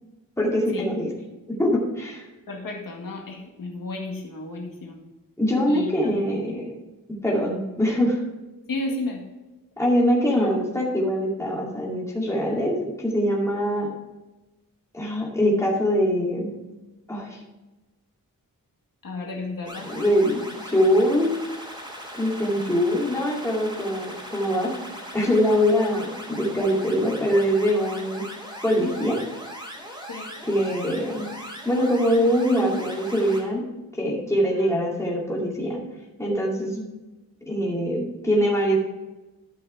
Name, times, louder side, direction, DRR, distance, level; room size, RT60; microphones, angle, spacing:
voice 1, 0.4-1.1 1.6-2.2 5.4-6.7 7.2-8.2 9.8-13.9 14.9-16.5 17.1-17.4 19.8-21.3 22.1-24.7 25.1-28.2 28.6-29.2 30.4-31.3 31.6-33.7 33.9-35.8 36.2-36.8 37.5-38.8, equal, 10° left, -4 dB, 2.4 m, -23 dB
voice 2, 2.5-5.0 5.7-6.2 8.7-9.2 19.0-19.9 25.4-25.6 30.1-30.3 34.5-34.7, left 2 dB, 70° left, 0 dB, 1.9 m, -33 dB
sound 1, 19.7-33.4, equal, 15° right, 2.7 m, -39 dB
12.0 x 5.7 x 4.7 m, 1.1 s
wide cardioid pair, 165°, 34 cm